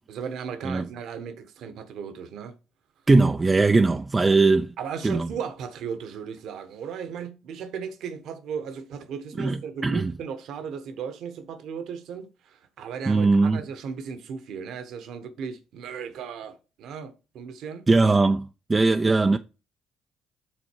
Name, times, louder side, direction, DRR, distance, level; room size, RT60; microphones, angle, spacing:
voice 1, 0.1-2.5 3.9-4.0 4.8-17.9, right 6 dB, 70° right, 1.3 m, -36 dB
voice 2, 3.1-4.7 5.0-5.3 9.4-10.1 13.1-13.6 17.9-19.4, right 3 dB, 25° right, 0.6 m, -20 dB
7.8 x 4.3 x 4.6 m
supercardioid pair, 60°, 0 cm